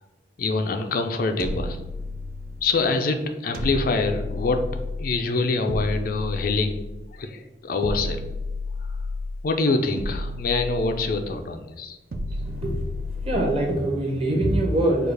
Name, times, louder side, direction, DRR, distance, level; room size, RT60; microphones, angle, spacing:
voice 1, 0.4-1.8 2.6-4.6 5.0-6.8 7.1-8.2 9.4-12.0, left 3 dB, 55° left, 5 dB, 0.4 m, -25 dB
sound 1, 1.4-2.7 3.5-5.2 5.7-7.1 7.8-9.4 10.0-11.4 12.1-13.7, left 2 dB, 55° right, 0.5 m, -32 dB
voice 2, 12.3-15.1, right 1 dB, 30° right, 0 dB, 1.0 m, -24 dB
4.7 x 2.4 x 4.7 m, 1.0 s
head